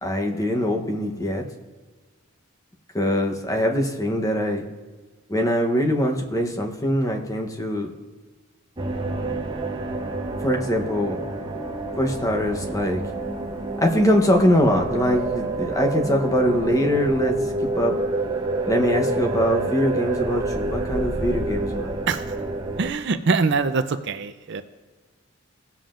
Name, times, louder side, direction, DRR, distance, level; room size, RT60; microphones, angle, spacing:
voice 1, 0.0-1.4 2.9-4.6 5.3-7.9 10.4-11.2 12.0-13.0 13.8-18.0 18.6-22.0, equal, 15° left, 3 dB, 0.9 m, -22 dB
sound 1, 8.8-22.9, right 2 dB, 25° right, 0.8 m, -28 dB
voice 2, 22.8-24.6, right 4 dB, 55° right, 10 dB, 0.5 m, -23 dB
17.5 x 7.4 x 2.5 m, 1.3 s
head